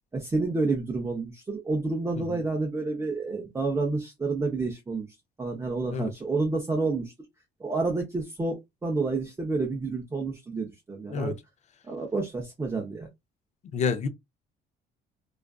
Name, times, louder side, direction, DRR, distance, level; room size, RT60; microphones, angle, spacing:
voice 1, 0.1-5.1 5.4-7.1 7.6-11.3 11.8-13.1, right 3 dB, 15° right, 0.6 m, -29 dB
voice 2, 13.7-14.1, left 5 dB, 45° left, 0.5 m, -29 dB
2.4 x 2.3 x 2.2 m
cardioid pair, 110°, 17 cm